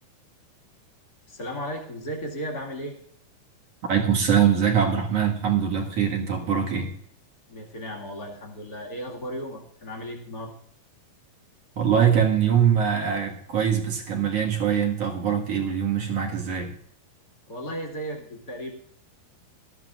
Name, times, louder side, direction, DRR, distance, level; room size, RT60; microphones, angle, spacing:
voice 1, 1.3-3.0 7.5-10.5 17.5-18.7, equal, 30° left, -1 dB, 2.0 m, -35 dB
voice 2, 3.9-6.9 11.8-16.7, right 8 dB, 50° right, 0 dB, 2.5 m, -23 dB
19.0 x 13.5 x 2.5 m, 0.67 s
omnidirectional pair, 4.0 m